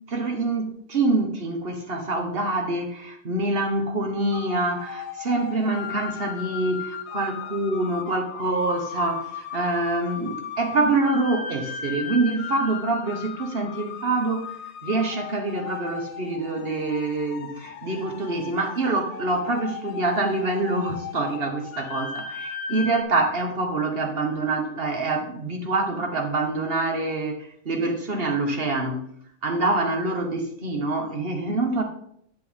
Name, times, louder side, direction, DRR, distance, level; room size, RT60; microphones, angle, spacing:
voice 1, 0.1-14.6 14.8-29.0 29.4-31.8, right 2 dB, 35° right, 3 dB, 1.1 m, -26 dB
sound 1, 4.3-23.0, left 7 dB, 65° left, 1.1 m, -37 dB
8.5 x 7.8 x 3.7 m, 0.67 s
omnidirectional pair, 2.3 m